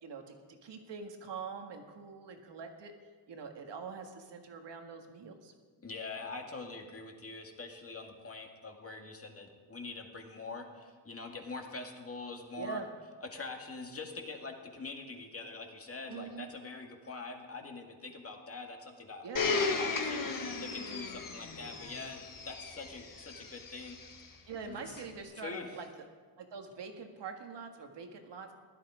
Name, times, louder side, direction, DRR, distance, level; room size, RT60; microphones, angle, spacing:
voice 1, 0.0-2.9 3.3-5.5 12.6-12.9 16.1-16.5 19.2-19.5 24.5-25.9 26.4-28.5, right 5 dB, 70° right, 4 dB, 1.8 m, -44 dB
voice 2, 5.8-12.8 13.3-20.2 20.6-24.0 24.6-25.0 25.4-25.7, left 3 dB, 30° left, 2 dB, 2.0 m, -44 dB
Domestic sounds home sounds, 19.4-24.2 25.0-25.1, left 4 dB, 45° left, 1.6 m, -35 dB
16.0 x 12.0 x 5.0 m, 1.5 s
cardioid pair, 110°, 44 cm